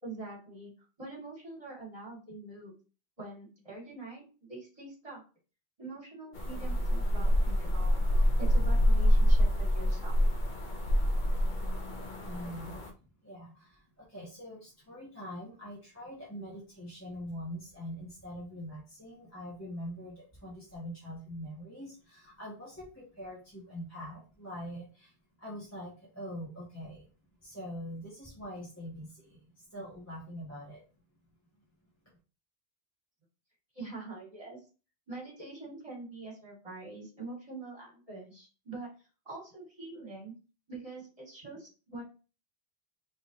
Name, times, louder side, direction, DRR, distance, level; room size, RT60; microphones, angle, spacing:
voice 1, 0.0-0.7 1.0-2.7 3.2-5.2 5.8-10.2 33.7-34.6 35.1-38.9 39.3-40.3 40.7-42.0, right 3 dB, 35° right, -3 dB, 2.1 m, -44 dB
sound 1, 6.3-12.9, equal, 55° left, 0.8 m, -26 dB
voice 2, 12.2-12.8 13.2-27.1 27.4-30.8, equal, 15° left, -7 dB, 1.5 m, -43 dB
4.8 x 3.4 x 2.7 m, 0.34 s
omnidirectional pair, 1.0 m